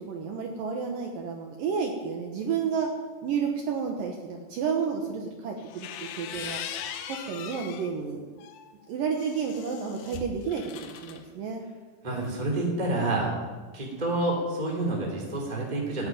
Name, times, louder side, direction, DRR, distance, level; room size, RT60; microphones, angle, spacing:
voice 1, 0.1-2.9 3.2-6.6 7.1-8.2 8.9-11.6, right 6 dB, 65° right, 2 dB, 2.7 m, -31 dB
sound 1, 5.6-7.9 8.4-11.2, left 9 dB, 70° left, 2.5 m, -40 dB
voice 2, 12.0-13.3 13.7-16.1, right 2 dB, 10° right, -1 dB, 2.7 m, -28 dB
16.0 x 9.6 x 9.2 m, 1.4 s
omnidirectional pair, 4.7 m